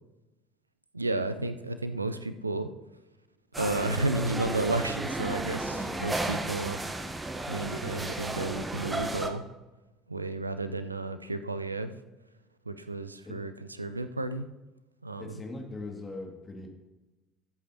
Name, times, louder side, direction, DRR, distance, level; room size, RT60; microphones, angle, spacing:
voice 1, 0.9-2.7 3.5-6.8 7.5-9.4 10.1-11.9 12.7-13.5 13.8-14.4 15.0-15.3, right 2 dB, 85° right, 11 dB, 0.5 m, -32 dB
sound 1, 3.5-9.3, right 2 dB, 15° right, 1.1 m, -33 dB
voice 2, 5.7-6.0 13.2-13.4 15.2-16.7, left 2 dB, 25° left, 2 dB, 2.2 m, -40 dB
17.0 x 8.2 x 2.9 m, 1.1 s
figure-of-eight pair, 60°, 0 cm